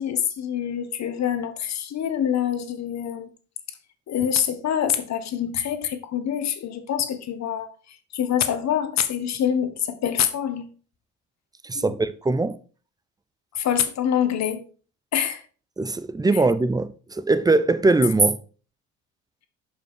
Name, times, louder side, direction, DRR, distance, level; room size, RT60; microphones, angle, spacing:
voice 1, 0.0-3.3 4.1-10.7 11.7-11.9 13.5-14.6 15.1-15.4 16.3-16.4, left 9 dB, 55° left, 1.5 m, -25 dB
voice 2, 11.6-12.6 15.8-18.4, right 3 dB, 10° right, 0.8 m, -21 dB
6.9 x 5.6 x 4.8 m
supercardioid pair, 80°, 33 cm